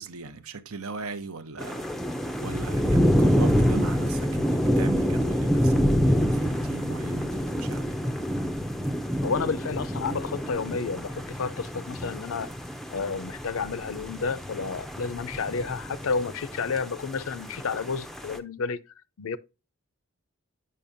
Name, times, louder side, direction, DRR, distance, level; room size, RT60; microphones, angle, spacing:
voice 1, 0.0-8.0, right 4 dB, 75° right, 0.8 m, -39 dB
sound 1, 1.6-18.4, equal, ahead, 0.4 m, -27 dB
voice 2, 9.2-12.5 12.9-18.8 19.2-19.4, left 5 dB, 65° left, 0.5 m, -31 dB
8.4 x 5.5 x 2.6 m
head